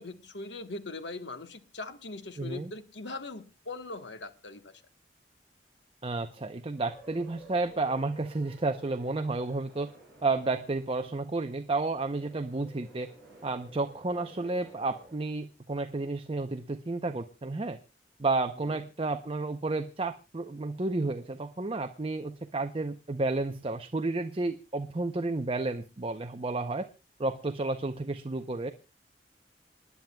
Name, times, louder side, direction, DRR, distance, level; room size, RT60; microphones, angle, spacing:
voice 1, 0.0-4.7 18.6-18.8, left 3 dB, 80° left, 1.3 m, -41 dB
voice 2, 2.4-2.7 6.0-9.9 10.2-13.1 13.4-17.8 18.2-26.9 27.2-28.7, right 3 dB, 30° right, 0.7 m, -31 dB
sound 1, 6.8-15.2, right 1 dB, ahead, 7.1 m, -53 dB
27.5 x 10.5 x 2.3 m
head